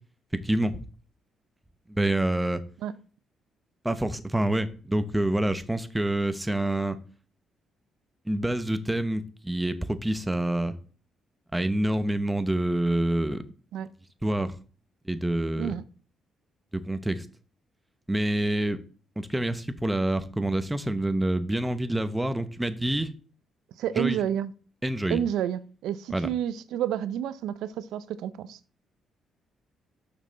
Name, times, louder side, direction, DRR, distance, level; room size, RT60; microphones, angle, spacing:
voice 1, 1.9-2.6 3.8-7.0 8.3-10.7 11.5-13.4 14.2-14.5 15.1-15.7 16.7-17.2 18.1-18.8 19.2-23.1 24.0-24.2 24.8-25.2 26.1-26.3, right 1 dB, 10° right, 0.8 m, -27 dB
voice 2, 23.8-24.5 25.1-28.6, right 10 dB, 85° right, 0.5 m, -30 dB
6.6 x 5.9 x 4.0 m
cardioid pair, 90°, 0 cm